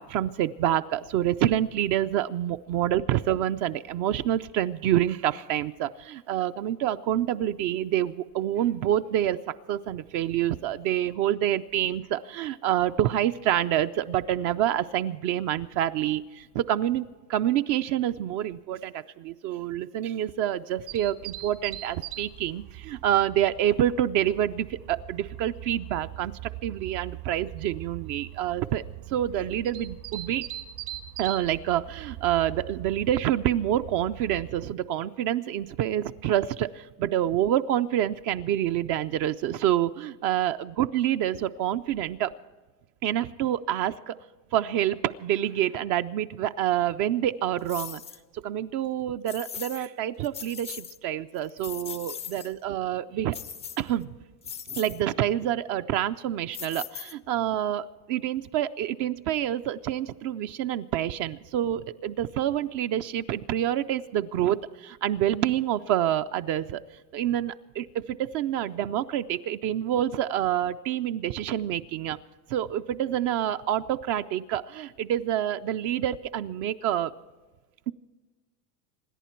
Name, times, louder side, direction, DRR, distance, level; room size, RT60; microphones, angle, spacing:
voice 1, 0.0-30.5 31.2-42.3 43.0-44.1 44.5-48.0 48.3-53.4 53.8-54.1 54.7-66.8 67.1-72.2 72.5-77.1, right 11 dB, 40° right, 11 dB, 0.5 m, -27 dB
sound 1, 20.9-34.6, right 14 dB, 60° right, 1.5 m, -41 dB
sound 2, 47.7-48.2 49.3-49.9 50.2-51.0 51.4-52.5 53.3-54.0 54.4-55.0 56.5-57.4, left 8 dB, 15° left, 0.4 m, -39 dB
26.5 x 10.5 x 4.4 m, 1.3 s
supercardioid pair, 130°, 47 cm